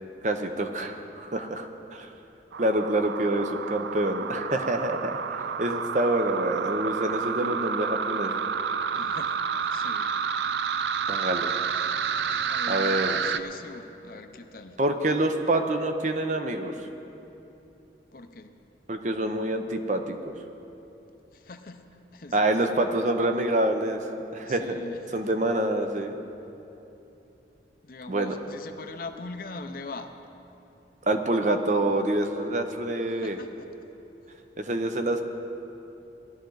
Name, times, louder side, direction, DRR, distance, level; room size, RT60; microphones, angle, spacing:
voice 1, 0.2-2.1 2.6-8.4 11.1-11.5 12.7-13.2 14.8-16.7 18.9-20.3 22.3-24.1 24.3-24.8 25.1-26.2 28.1-28.4 31.1-33.4 34.6-35.2, right 1 dB, 40° right, 6 dB, 0.7 m, -26 dB
sound 1, 2.5-13.4, right 6 dB, 75° right, 0.4 m, -30 dB
voice 2, 8.9-9.4 9.7-10.1 12.5-14.8 18.1-18.5 21.3-21.9 22.1-23.0 24.4-25.0 27.8-30.2 33.2-33.7, left 3 dB, 50° left, 7 dB, 0.7 m, -41 dB
17.5 x 11.5 x 3.9 m, 3.0 s
head